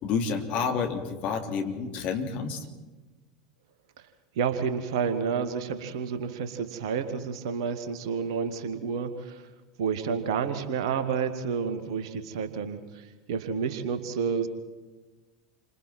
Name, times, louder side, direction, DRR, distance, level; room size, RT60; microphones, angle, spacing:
voice 1, 0.0-2.7, left 5 dB, 45° left, 3 dB, 3.4 m, -29 dB
voice 2, 4.4-9.5 9.8-14.5, right 6 dB, 60° right, 9 dB, 2.1 m, -30 dB
29.0 x 26.0 x 4.5 m, 1.2 s
figure-of-eight pair, 75°, 3 cm